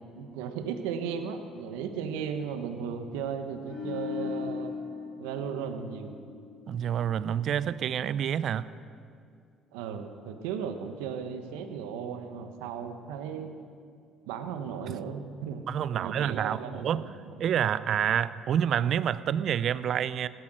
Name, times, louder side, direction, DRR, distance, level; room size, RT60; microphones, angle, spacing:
voice 1, 0.2-4.7 5.2-6.2 9.7-13.5 14.2-15.6 15.9-17.4, right 7 dB, 85° right, 7 dB, 1.3 m, -36 dB
sound 1, 3.6-6.9 7.2-7.5, left 6 dB, 80° left, 4.5 m, -38 dB
voice 2, 6.7-8.7 15.7-17.0 17.4-20.3, right 9 dB, 60° right, 16 dB, 0.5 m, -28 dB
16.5 x 12.5 x 6.4 m, 2.3 s
supercardioid pair, 70°, 0 cm